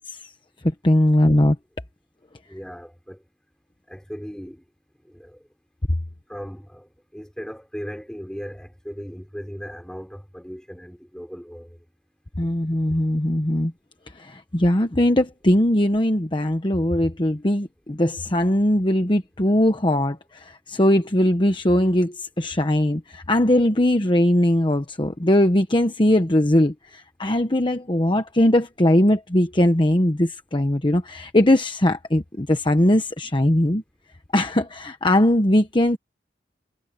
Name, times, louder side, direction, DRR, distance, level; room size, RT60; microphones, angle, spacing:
voice 1, 0.8-1.6 12.4-13.7 14.1-33.8 34.3-36.0, left 1 dB, 30° left, 1.1 m, -20 dB
voice 2, 2.5-3.2 3.9-4.6 5.0-5.4 6.3-11.8, equal, 5° left, 4.3 m, -37 dB
head